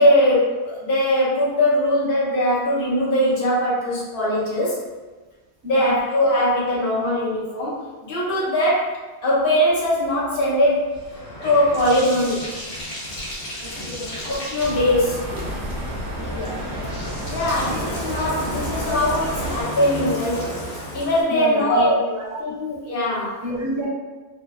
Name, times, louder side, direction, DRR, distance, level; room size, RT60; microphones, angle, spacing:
voice 1, 0.0-4.8 5.6-8.9 9.2-11.0 11.4-12.5 14.2-15.2 17.3-20.5 20.9-22.0 22.4-23.4, left 1 dB, 60° left, -7 dB, 1.0 m, -21 dB
voice 2, 5.6-6.0 13.8-14.2 16.3-16.6 21.3-22.2 23.4-23.9, left 1 dB, 35° right, -5 dB, 0.5 m, -29 dB
Bathtub (filling or washing), 9.9-21.2, equal, 85° left, 1.2 m, -33 dB
sound 1, 14.6-19.6, right 1 dB, 75° right, 0.9 m, -31 dB
2.7 x 2.1 x 2.2 m, 1.3 s
omnidirectional pair, 1.1 m